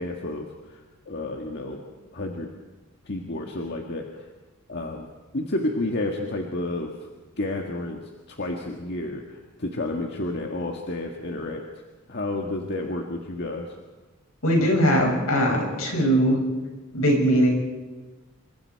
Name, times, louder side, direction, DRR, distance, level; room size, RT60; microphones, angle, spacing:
voice 1, 0.0-1.8 2.1-2.5 3.1-4.3 4.7-5.1 5.3-6.9 7.4-11.7 12.1-13.8, left 2 dB, 50° left, 2 dB, 1.8 m, -31 dB
voice 2, 14.4-16.4 16.9-17.5, equal, 75° left, 1 dB, 6.8 m, -20 dB
27.0 x 24.5 x 4.7 m, 1.3 s
head